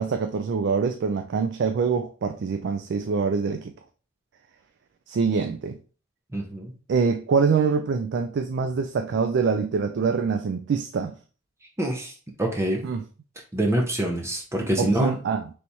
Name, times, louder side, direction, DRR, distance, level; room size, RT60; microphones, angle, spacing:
voice 1, 0.0-3.7 5.1-5.8 6.9-11.2 12.8-13.0 14.8-15.5, right 5 dB, 55° right, 0.3 m, -25 dB
voice 2, 6.3-6.7 11.8-12.1 12.4-12.8 13.5-15.1, right 1 dB, 15° right, 0.6 m, -25 dB
3.4 x 3.0 x 4.0 m
head